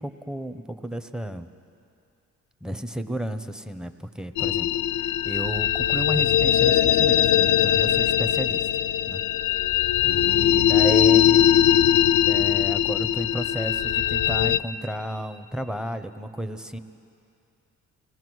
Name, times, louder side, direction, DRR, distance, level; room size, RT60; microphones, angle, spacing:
voice 1, 0.0-1.5 2.6-4.7 4.9-8.6 9.1-9.2 10.0-11.5 12.3-16.8, right 1 dB, ahead, 9 dB, 0.9 m, -32 dB
sound 1, 4.4-14.6, left 11 dB, 75° left, 0.5 m, -21 dB
24.0 x 17.0 x 6.3 m, 2.5 s
cardioid pair, 90°, 30 cm